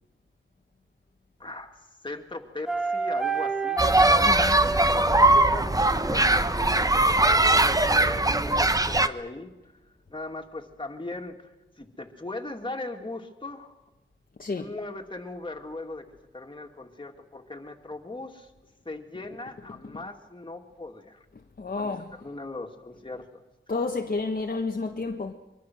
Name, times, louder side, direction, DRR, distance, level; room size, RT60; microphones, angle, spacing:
voice 1, 1.4-5.0 5.3-9.7 10.1-11.5 11.8-13.8 14.6-16.1 16.3-18.5 18.8-21.2 21.7-23.4, left 2 dB, 25° left, 2.6 m, -39 dB
sound 1, 2.7-5.6 7.8-8.6, right 3 dB, ahead, 1.3 m, -30 dB
sound 2, 3.8-9.1, right 2 dB, 15° right, 0.9 m, -21 dB
voice 2, 4.2-4.6 14.4-14.7 19.8-19.9 21.6-22.1 23.7-25.3, left 3 dB, 45° left, 1.4 m, -30 dB
24.0 x 23.0 x 6.3 m
wide cardioid pair, 80°, 21 cm